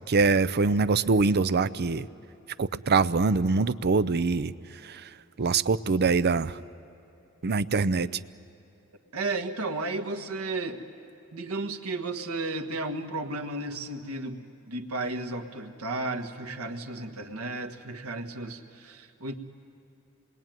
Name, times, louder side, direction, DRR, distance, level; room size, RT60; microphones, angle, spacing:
voice 1, 0.0-2.1 2.6-4.5 4.8-5.1 5.4-6.6 7.4-8.1, right 4 dB, 50° right, 15 dB, 0.6 m, -24 dB
voice 2, 9.1-10.8 11.3-19.3, right 2 dB, 90° right, 6 dB, 1.5 m, -33 dB
27.5 x 21.5 x 9.2 m, 2.9 s
head